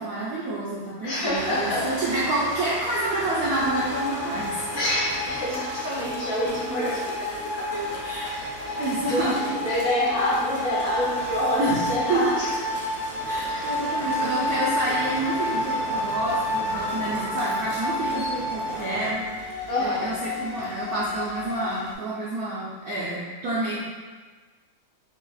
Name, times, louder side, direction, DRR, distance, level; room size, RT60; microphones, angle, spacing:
voice 1, 0.0-4.6 8.0-8.3 8.8-9.6 11.6-11.8 12.1-12.2 13.2-23.8, right 2 dB, 75° right, -8 dB, 0.8 m, -28 dB
voice 2, 1.0-2.1 4.7-9.2 9.6-12.5 13.4-14.0 19.7-20.1, left 1 dB, 55° left, -5 dB, 1.0 m, -28 dB
sound 1, 1.3-19.1, right 1 dB, 45° right, 0.8 m, -38 dB
sound 2, 3.5-21.9, left 2 dB, 90° left, 1.6 m, -30 dB
5.8 x 2.7 x 2.3 m, 1.4 s
omnidirectional pair, 2.4 m